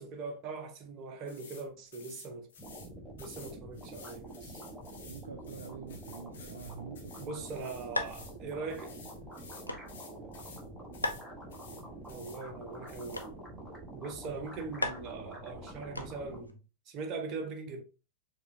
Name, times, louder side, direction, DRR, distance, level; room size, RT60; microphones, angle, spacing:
voice 1, 0.0-2.5 3.1-4.6 7.2-9.0 12.1-13.4 13.9-17.8, right 4 dB, 35° right, 0.8 m, -41 dB
sound 1, 1.3-1.6 1.9-2.9 3.2-8.4 8.7-10.6 10.9-11.2 11.5-12.4 12.9-13.3, left 5 dB, 60° left, 1.0 m, -53 dB
sound 2, 2.6-16.4, right 1 dB, 5° right, 1.1 m, -47 dB
voice 2, 5.1-7.4, right 6 dB, 70° right, 0.3 m, -46 dB
sound 3, 7.9-16.5, left 1 dB, 85° left, 0.4 m, -42 dB
4.6 x 2.7 x 2.7 m
figure-of-eight pair, 90°, 0 cm